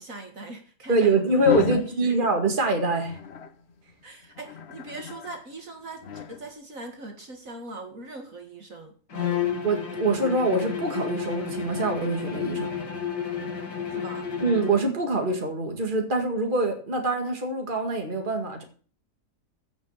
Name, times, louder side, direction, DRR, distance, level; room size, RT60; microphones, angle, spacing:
voice 1, 0.0-1.4 1.7-2.2 4.0-9.5 13.9-14.3, right 2 dB, 55° right, 3 dB, 2.2 m, -41 dB
voice 2, 0.9-3.2 9.6-12.7 14.4-18.6, right 2 dB, 30° right, 3 dB, 2.2 m, -24 dB
sound 1, 1.4-1.9 3.0-3.5 4.4-5.3 6.0-6.4, left 6 dB, 50° left, 1.0 m, -30 dB
Bowed string instrument, 9.1-14.9, left 7 dB, 85° left, 2.5 m, -31 dB
15.5 x 6.0 x 7.2 m, 0.43 s
omnidirectional pair, 1.7 m